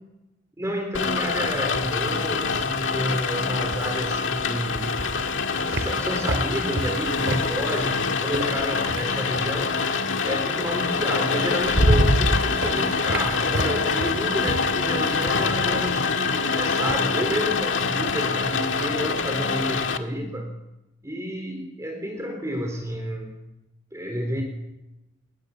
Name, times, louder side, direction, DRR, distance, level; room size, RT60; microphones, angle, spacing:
voice 1, 0.6-5.1 5.5-9.8 10.2-20.5 21.0-23.4 23.9-24.4, equal, 15° right, 3 dB, 3.8 m, -30 dB
Rain, 0.9-20.0, left 5 dB, 90° left, 1.8 m, -25 dB
sound 1, 5.0-9.6 10.9-11.0 11.4-17.0, right 1 dB, 80° right, 2.4 m, -28 dB
26.5 x 21.0 x 7.2 m, 0.95 s
head